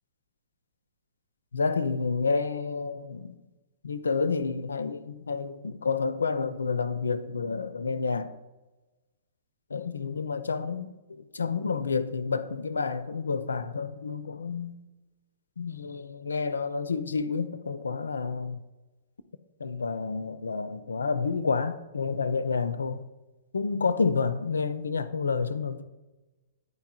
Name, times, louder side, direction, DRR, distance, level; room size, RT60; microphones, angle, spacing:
voice 1, 1.5-3.4 3.8-8.3 9.7-14.8 15.6-18.6 19.6-23.0 23.5-25.8, left 4 dB, 70° left, 0.4 m, -29 dB
9.5 x 4.6 x 2.3 m
figure-of-eight pair, 110°, 0 cm